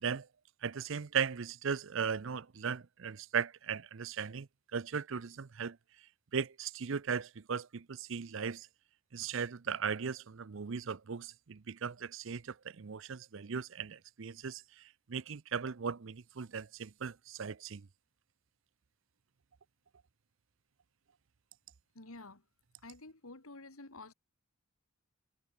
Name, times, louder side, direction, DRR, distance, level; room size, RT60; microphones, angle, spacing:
voice 1, 0.6-5.8 6.3-8.7 9.1-17.9, right 6 dB, 60° right, 0.6 m, -37 dB
voice 2, 21.9-22.4 22.8-24.1, left 2 dB, 75° left, 2.6 m, -50 dB
head